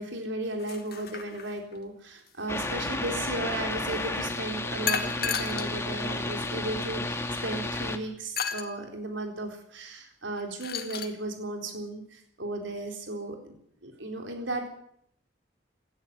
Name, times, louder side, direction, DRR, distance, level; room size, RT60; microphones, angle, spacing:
voice 1, 0.0-13.6 13.8-14.8, right 2 dB, 85° right, 3 dB, 4.1 m, -35 dB
sound 1, 0.6-1.7 4.9-5.7 6.5-6.6 8.4-8.7 10.4-11.1, left 7 dB, 50° left, 2.1 m, -32 dB
sound 2, 2.5-8.0, left 2 dB, 15° left, 1.8 m, -32 dB
18.0 x 15.0 x 9.6 m, 0.67 s
head